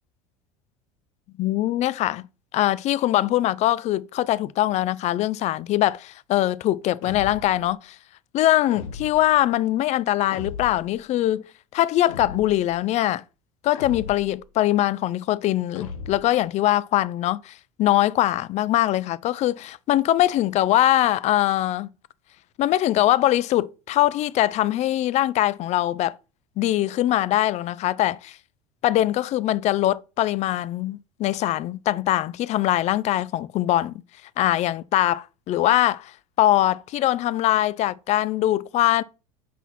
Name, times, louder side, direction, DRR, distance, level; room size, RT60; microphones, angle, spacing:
voice 1, 1.4-2.3 2.5-8.0 8.3-11.4 11.7-13.2 13.6-21.9 22.6-26.2 26.6-28.4 28.8-33.9 34.4-39.0, left 14 dB, 40° left, 0.4 m, -22 dB
sound 1, 7.0-7.7 8.7-9.4 10.3-10.9 12.1-12.7 13.7-14.4 15.7-16.4, left 4 dB, 75° left, 1.2 m, -37 dB
5.5 x 4.0 x 4.2 m
hypercardioid pair, 75°, 17 cm